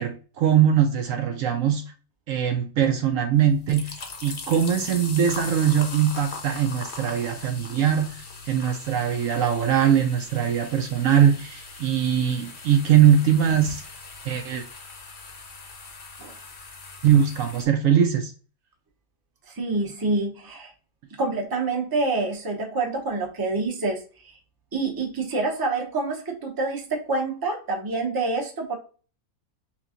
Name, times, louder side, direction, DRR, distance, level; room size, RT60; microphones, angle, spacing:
voice 1, 0.0-1.8 2.3-3.9 4.2-13.8 14.3-14.6 17.0-18.3, right 9 dB, 70° right, 6 dB, 0.9 m, -21 dB
sound 1, 3.4-17.6, left 4 dB, 45° left, 0.8 m, -40 dB
voice 2, 19.5-20.7 21.2-24.0 24.7-28.8, right 3 dB, 20° right, 1 dB, 0.7 m, -27 dB
3.5 x 3.0 x 3.6 m, 0.37 s
omnidirectional pair, 1.6 m